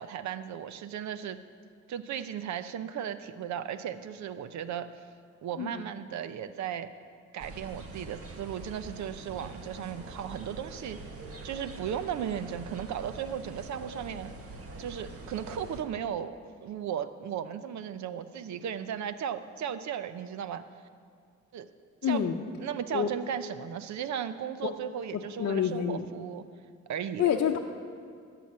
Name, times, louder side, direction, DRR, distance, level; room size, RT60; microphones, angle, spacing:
voice 1, 0.0-1.4 1.9-4.9 5.4-6.9 7.3-11.0 11.4-14.3 14.8-16.4 16.6-20.6 21.5-21.7 22.0-22.2 22.6-26.4 26.9-27.3, right 9 dB, 65° right, 12 dB, 0.7 m, -36 dB
sound 1, 7.4-15.8, right 2 dB, 50° right, 1.6 m, -44 dB
voice 2, 22.0-22.4 22.9-23.1 24.6-24.7 25.4-26.0 27.2-27.6, left 9 dB, 55° left, 1 dB, 0.8 m, -27 dB
13.5 x 6.0 x 9.4 m, 2.2 s
cardioid pair, 90°, 30 cm